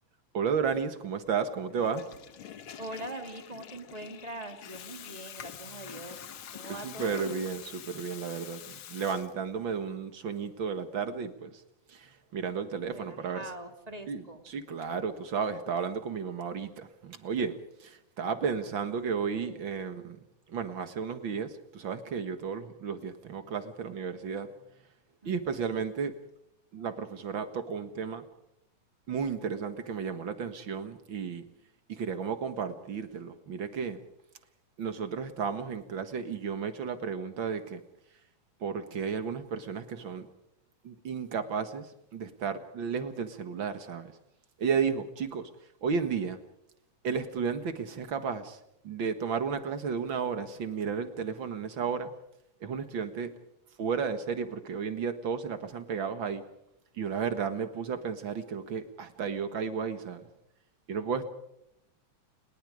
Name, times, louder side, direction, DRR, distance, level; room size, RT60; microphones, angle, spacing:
voice 1, 0.3-2.1 6.8-11.6 11.9-13.4 14.1-20.2 20.5-24.5 25.3-26.1 26.7-28.2 29.1-31.4 31.9-34.0 34.8-37.8 38.6-40.3 40.8-44.1 44.6-45.5 45.8-46.4 47.0-48.6 48.8-52.1 52.6-53.3 53.8-56.4 56.9-60.3 60.9-61.2, right 6 dB, 45° right, 10 dB, 1.9 m, -33 dB
Water tap faucet / Toilet flush, 1.7-9.7, left 9 dB, 55° left, 1.6 m, -46 dB
voice 2, 2.8-7.4 12.9-14.4 18.4-18.7 19.2-19.7 25.2-25.7, right 1 dB, 15° right, 6 dB, 2.2 m, -43 dB
29.5 x 20.5 x 5.0 m, 0.80 s
omnidirectional pair, 3.5 m